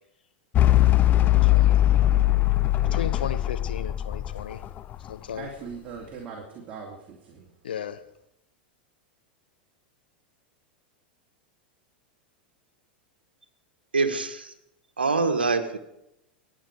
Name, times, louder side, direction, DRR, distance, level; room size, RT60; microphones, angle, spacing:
sound 1, 0.5-5.1, left 14 dB, 35° left, 0.7 m, -21 dB
voice 1, 1.2-2.1 2.8-4.6 5.1-5.5 7.6-8.0, left 8 dB, 70° left, 11 dB, 1.1 m, -35 dB
voice 2, 5.3-7.5, right 5 dB, 35° right, -1 dB, 2.9 m, -40 dB
voice 3, 13.9-14.5 15.0-15.8, right 4 dB, 80° right, 8 dB, 1.5 m, -24 dB
25.5 x 9.2 x 4.9 m, 0.83 s
figure-of-eight pair, 90°, 5 cm